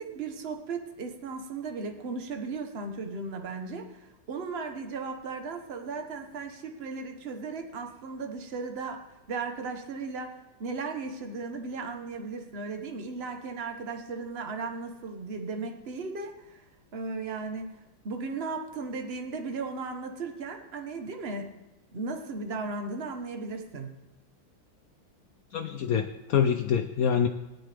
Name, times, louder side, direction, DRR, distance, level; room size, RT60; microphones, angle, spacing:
voice 1, 0.0-3.9 4.3-16.6 16.9-17.8 18.0-21.5 21.9-24.0, right 4 dB, 40° right, 5 dB, 1.1 m, -36 dB
voice 2, 25.5-27.3, left 7 dB, 85° left, 7 dB, 0.7 m, -25 dB
17.0 x 10.5 x 3.4 m, 0.98 s
omnidirectional pair, 2.1 m